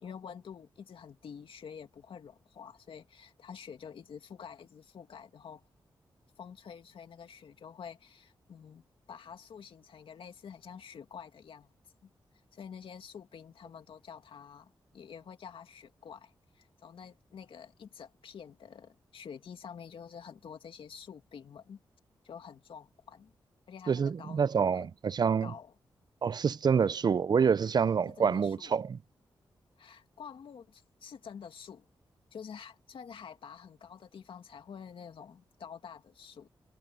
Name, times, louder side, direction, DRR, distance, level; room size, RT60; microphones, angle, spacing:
voice 1, 0.0-5.6 6.4-8.8 9.1-11.7 12.0-12.1 12.5-21.8 22.2-23.3 23.7-24.9 25.4-25.7 28.1-28.7 29.8-31.9 32.3-36.5, left 7 dB, 80° left, 2.4 m, -48 dB
voice 2, 23.9-25.5 26.2-29.0, right 6 dB, 50° right, 0.4 m, -27 dB
cardioid pair, 60°, 9 cm